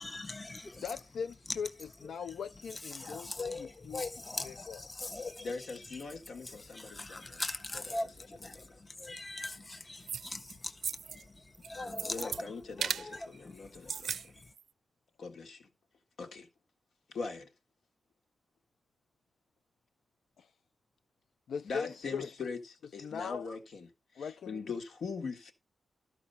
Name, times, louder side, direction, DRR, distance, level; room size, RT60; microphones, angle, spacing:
voice 1, 0.0-0.9 1.5-1.6 2.0-2.3 2.7-14.5, left 2 dB, 20° left, 0.8 m, -42 dB
voice 2, 0.8-3.3 3.6-4.0 4.4-4.8 20.4-20.5 21.5-22.3 23.0-23.5 24.2-24.6, left 6 dB, 80° left, 0.5 m, -40 dB
voice 3, 5.4-7.4 8.5-8.7 12.0-14.1 15.2-15.7 16.2-16.5 17.1-17.5 21.6-23.9 24.1-25.5, left 4 dB, 65° left, 1.6 m, -41 dB
sound 1, 10.1-10.5 10.8-11.2 11.5-12.4 12.8-13.1 13.7-14.2 14.6-14.7, right 7 dB, 70° right, 0.4 m, -36 dB
13.0 x 4.9 x 5.6 m
wide cardioid pair, 165°, 0 cm